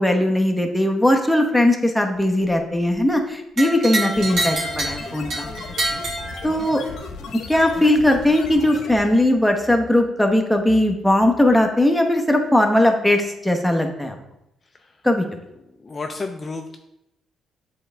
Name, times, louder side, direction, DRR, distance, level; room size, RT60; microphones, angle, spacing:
voice 1, 0.0-5.4 6.4-6.8 7.3-14.1 15.0-15.2, left 1 dB, 5° left, 3 dB, 0.8 m, -19 dB
sound 1, 3.6-6.9, right 2 dB, 70° right, 1.8 m, -27 dB
sound 2, 4.1-9.3, left 4 dB, 80° left, 0.9 m, -36 dB
voice 2, 5.4-5.9 6.3-6.5 14.7-15.0 15.7-16.8, left 3 dB, 30° left, 4 dB, 0.5 m, -34 dB
7.7 x 3.8 x 3.3 m, 0.85 s
cardioid pair, 90°, 0 cm